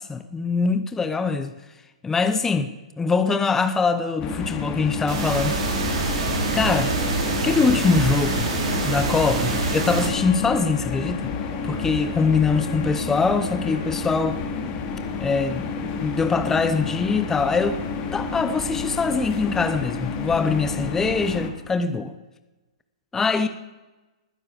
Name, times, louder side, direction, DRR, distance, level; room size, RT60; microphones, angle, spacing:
voice 1, 0.0-1.5 2.0-2.7 3.0-5.6 6.5-7.1 7.4-8.5 8.8-11.3 11.6-14.4 15.2-17.8 18.1-22.1 23.1-23.5, left 4 dB, 10° left, 0.8 m, -23 dB
sound 1, 4.2-21.5, left 5 dB, 30° left, 2.4 m, -30 dB
sound 2, 5.1-10.1, right 4 dB, 50° right, 5.5 m, -26 dB
Wind instrument woodwind instrument, 9.4-13.9, left 1 dB, 45° left, 4.6 m, -43 dB
20.5 x 10.0 x 6.7 m
hypercardioid pair, 140°, 4 cm